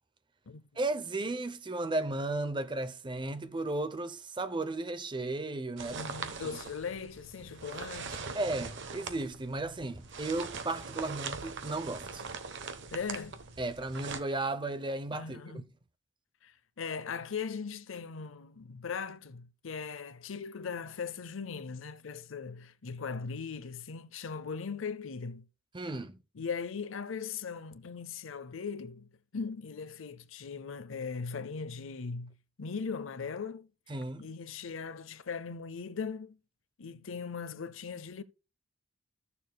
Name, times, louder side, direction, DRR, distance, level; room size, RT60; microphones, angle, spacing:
voice 1, 0.8-6.1 8.3-12.2 13.6-15.6 25.7-26.2 33.9-34.3, right 2 dB, 25° right, 0.7 m, -35 dB
sound 1, 5.8-14.2, right 5 dB, 60° right, 1.0 m, -42 dB
voice 2, 5.9-8.3 12.9-13.4 15.1-15.7 16.4-25.4 26.3-33.7 34.2-36.4 36.8-38.2, left 5 dB, 70° left, 0.6 m, -39 dB
14.5 x 6.9 x 2.3 m
head